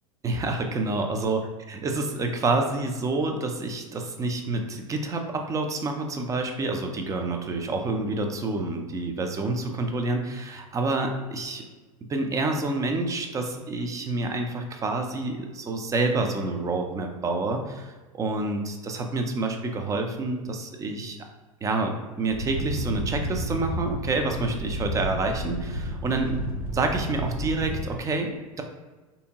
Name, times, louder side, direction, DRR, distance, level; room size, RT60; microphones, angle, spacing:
voice 1, 0.2-11.7 12.1-21.3 21.6-26.4 26.7-28.6, right 2 dB, 20° right, 4 dB, 0.5 m, -28 dB
sound 1, 22.3-27.8, right 1 dB, 75° right, 0.6 m, -31 dB
3.5 x 2.7 x 2.8 m, 1.2 s
figure-of-eight pair, 85°, 18 cm